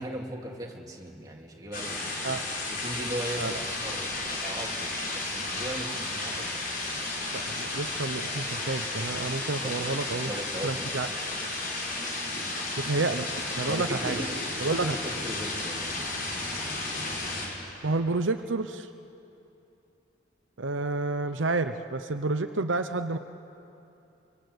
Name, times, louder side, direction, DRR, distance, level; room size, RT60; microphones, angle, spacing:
voice 1, 0.0-6.5 9.6-10.9 13.7-15.9, right 1 dB, 20° right, -1 dB, 2.8 m, -38 dB
sound 1, 1.7-17.5, left 2 dB, 50° left, 5.3 m, -33 dB
voice 2, 7.3-10.3 10.6-11.1 12.8-13.3 13.6-14.2 14.6-15.0 17.8-18.9 20.6-23.2, right 3 dB, 75° right, 8 dB, 0.8 m, -29 dB
24.5 x 24.5 x 8.1 m, 2.8 s
head